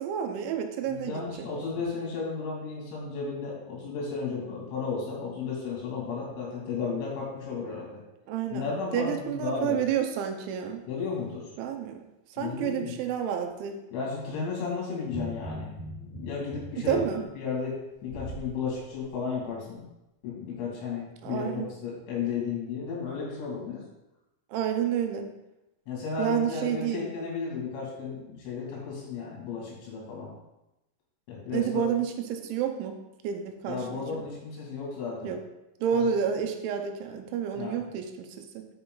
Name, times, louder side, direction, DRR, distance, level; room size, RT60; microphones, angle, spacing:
voice 1, 0.0-1.5 8.3-8.7 8.9-10.8 11.6-12.1 12.4-13.8 16.9-17.2 21.2-21.7 24.5-25.3 26.2-27.0 31.5-34.0 35.2-35.4 35.8-38.3 38.5-38.7, right 8 dB, 80° right, 5 dB, 3.2 m, -29 dB
voice 2, 0.8-7.9 8.5-9.8 10.9-11.5 12.4-13.0 13.9-17.0 17.4-17.8 18.0-19.8 20.2-23.8 25.9-30.3 31.3-31.8 33.7-35.4 35.9-36.0 37.6-37.9, left 5 dB, 85° left, -3 dB, 5.0 m, -34 dB
sound 1, 15.0-18.5 18.9-19.1, right 1 dB, 40° left, 1.2 m, -40 dB
10.5 x 5.7 x 3.9 m, 0.94 s
omnidirectional pair, 5.4 m